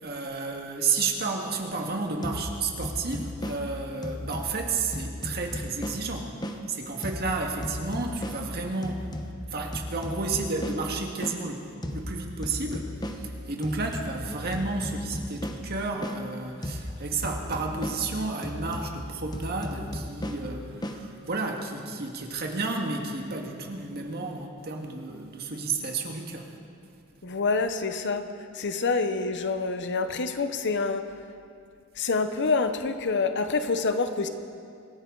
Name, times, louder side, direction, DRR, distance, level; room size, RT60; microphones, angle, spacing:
voice 1, 0.0-6.3 6.7-9.1 9.5-26.5, right 3 dB, 45° right, 2 dB, 1.8 m, -32 dB
sound 1, 2.2-6.6 7.0-11.4 11.8-16.2 16.6-21.0, left 1 dB, 20° left, 0.9 m, -36 dB
voice 2, 27.2-28.2 28.5-31.0 32.0-34.3, left 4 dB, 55° left, 9 dB, 0.9 m, -27 dB
25.5 x 14.5 x 3.9 m, 2.3 s
head